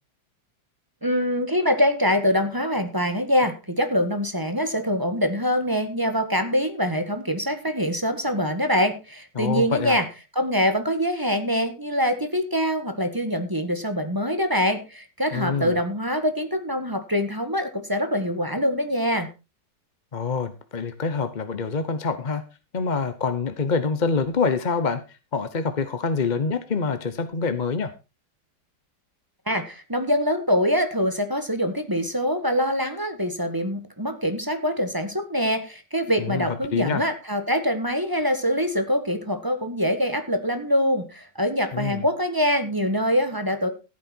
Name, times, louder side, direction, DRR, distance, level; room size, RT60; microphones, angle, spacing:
voice 1, 1.0-19.3 29.5-43.7, equal, 10° right, 8 dB, 1.6 m, -24 dB
voice 2, 9.4-10.0 15.3-15.8 20.1-22.4 22.7-25.0 25.3-27.9 36.2-37.0 41.7-42.0, left 5 dB, 35° left, 10 dB, 0.8 m, -26 dB
14.5 x 8.9 x 4.5 m, 0.29 s
omnidirectional pair, 1.9 m